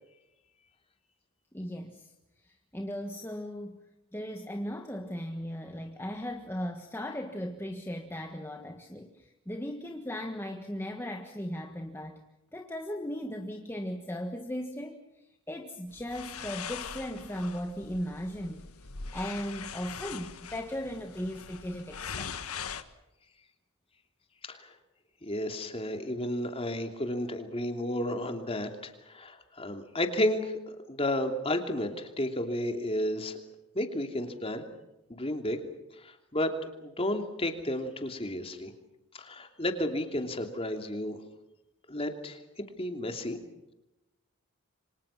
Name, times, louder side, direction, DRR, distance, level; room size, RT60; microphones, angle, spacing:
voice 1, 1.5-2.1 2.4-3.8 4.1-12.2 12.5-15.0 15.5-22.5, equal, 10° left, 3 dB, 1.5 m, -37 dB
sound 1, 15.9-22.8, left 6 dB, 90° left, 1.5 m, -42 dB
voice 2, 25.2-33.4 33.7-34.6 35.1-35.6 36.0-38.7 39.1-41.2 41.9-43.4, left 1 dB, 25° left, 5 dB, 2.9 m, -32 dB
28.0 x 25.0 x 5.9 m, 0.93 s
head